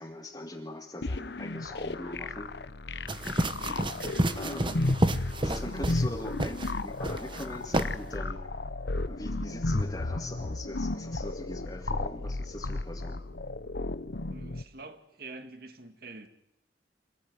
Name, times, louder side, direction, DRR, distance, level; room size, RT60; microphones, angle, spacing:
voice 1, 0.0-2.5 4.4-8.4 9.0-13.2, left 1 dB, 20° left, 2.0 m, -41 dB
sound 1, 1.0-14.6, left 2 dB, 65° left, 1.0 m, -34 dB
sound 2, 3.1-6.1 6.4-6.7 7.0-7.4 7.7-7.9, right 1 dB, 25° right, 1.1 m, -29 dB
voice 2, 3.5-3.8 14.3-16.3, right 3 dB, 55° right, 2.0 m, -46 dB
27.0 x 16.0 x 9.7 m
head